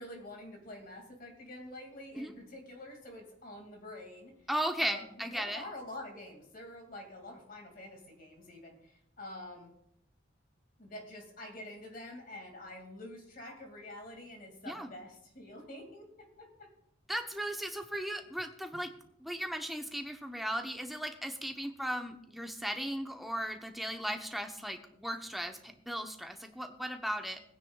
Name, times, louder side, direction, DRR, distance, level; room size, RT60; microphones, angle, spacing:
voice 1, 0.0-4.3 4.8-9.7 10.8-16.7, left 1 dB, 50° left, 2 dB, 2.4 m, -47 dB
voice 2, 4.5-5.6 14.7-14.9 17.1-18.9 19.2-27.4, equal, ahead, 4 dB, 0.9 m, -36 dB
19.0 x 9.7 x 2.4 m, 0.72 s
head